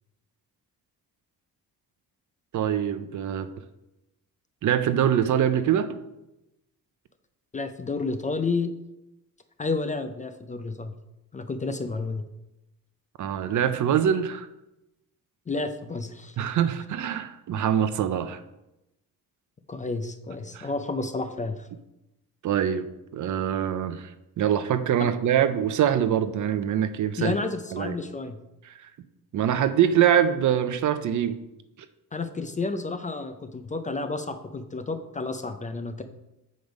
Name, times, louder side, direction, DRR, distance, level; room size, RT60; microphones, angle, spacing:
voice 1, 2.5-3.5 4.6-6.0 13.2-14.5 16.4-18.4 20.5-20.7 22.4-22.9 23.1-24.1 24.4-27.3 27.7-27.9 28.8-28.9 29.3-31.4, right 9 dB, 55° right, 11 dB, 0.6 m, -24 dB
voice 2, 7.5-8.7 9.6-10.9 11.3-12.2 15.5-16.4 19.7-21.7 25.0-25.1 27.2-28.4 32.1-36.0, left 3 dB, 20° left, 8 dB, 0.4 m, -31 dB
7.8 x 5.1 x 5.2 m, 0.91 s
cardioid pair, 150°, 36 cm